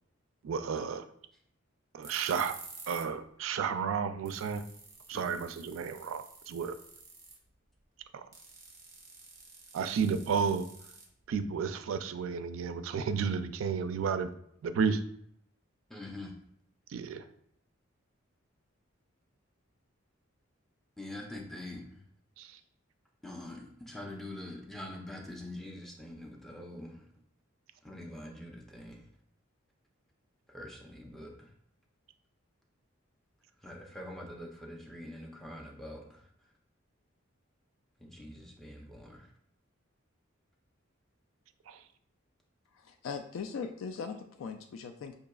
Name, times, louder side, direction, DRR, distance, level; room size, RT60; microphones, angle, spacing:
voice 1, 0.4-1.0 1.9-2.6 2.9-4.6 5.1-6.7 8.1-8.3 9.7-10.7 11.3-14.3 14.6-15.0 16.9-17.3 22.4-22.6 41.7-41.8, right 6 dB, 75° right, 10 dB, 0.3 m, -32 dB
sound 1, 2.0-3.1 3.4-3.5 4.0-4.1 4.2-7.5 8.3-11.5, right 4 dB, 15° right, 0.9 m, -50 dB
voice 2, 15.9-16.3 21.0-22.0 23.2-27.1 27.8-29.1 30.5-31.5 33.6-36.3 38.0-39.3, left 1 dB, ahead, -1 dB, 0.5 m, -44 dB
voice 3, 42.7-45.1, left 5 dB, 75° left, 6 dB, 0.3 m, -40 dB
4.8 x 2.7 x 2.3 m, 0.70 s
head